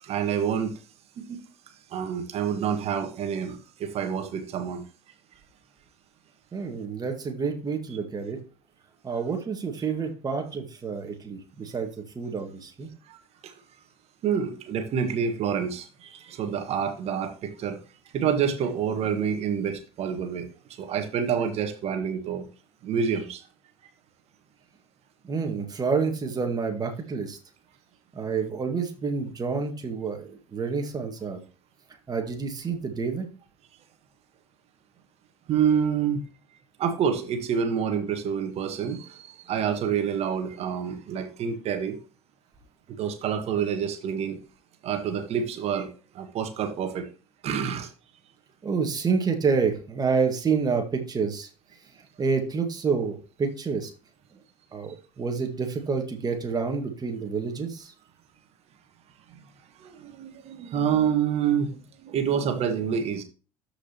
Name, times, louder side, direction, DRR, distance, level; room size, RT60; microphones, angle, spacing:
voice 1, 0.0-0.8 1.2-1.4 1.9-4.8 13.1-13.2 13.4-13.5 14.2-17.8 18.1-20.5 20.8-22.4 22.8-23.4 35.5-36.2 36.8-42.0 43.0-44.4 44.8-45.9 46.1-47.1 47.4-47.9 59.8-63.2, right 7 dB, 45° right, 1.7 m, -27 dB
voice 2, 6.5-8.4 9.0-12.9 25.2-27.4 28.1-31.4 32.1-33.3 48.6-51.5 52.2-53.9 54.7-57.9, right 5 dB, 25° right, 2.0 m, -28 dB
13.0 x 5.0 x 3.0 m
figure-of-eight pair, 60°, 14 cm